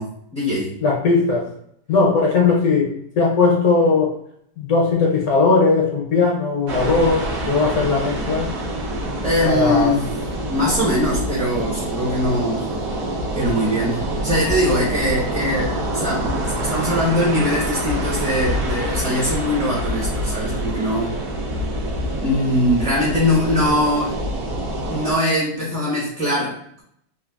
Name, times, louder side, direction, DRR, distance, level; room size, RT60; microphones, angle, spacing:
voice 1, 0.0-0.7 9.2-10.0 10.5-12.7 13.3-16.3 16.6-21.1 22.2-24.3 24.9-26.8, left 1 dB, 10° right, -8 dB, 0.4 m, -22 dB
voice 2, 0.8-1.5 1.9-4.2 4.6-8.5 9.4-9.9, left 4 dB, 70° left, -2 dB, 1.0 m, -18 dB
sound 1, 6.7-25.1, right 1 dB, 65° right, 1.0 m, -26 dB
3.2 x 2.3 x 2.3 m, 0.70 s
omnidirectional pair, 1.8 m